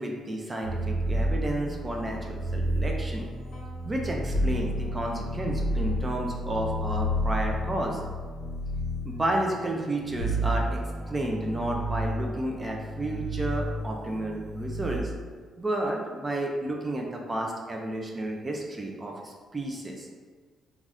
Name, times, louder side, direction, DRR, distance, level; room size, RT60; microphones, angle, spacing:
voice 1, 0.0-3.3 3.9-8.0 9.1-10.8 11.1-15.1 15.6-20.1, right 1 dB, 25° right, 0 dB, 0.4 m, -31 dB
sound 1, 0.6-15.0, equal, 55° left, 0.8 m, -31 dB
2.4 x 2.3 x 3.3 m, 1.5 s
cardioid pair, 90°, 0 cm